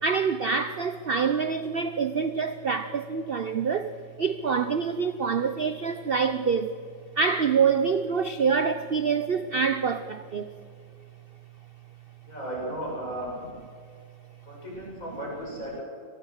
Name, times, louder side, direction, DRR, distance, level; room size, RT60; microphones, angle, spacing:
voice 1, 0.0-6.8 7.1-10.5, right 5 dB, 65° right, 11 dB, 0.5 m, -26 dB
voice 2, 12.3-13.3 14.4-15.8, equal, 45° left, -4 dB, 8.4 m, -35 dB
26.0 x 19.5 x 6.5 m, 2.3 s
omnidirectional pair, 2.0 m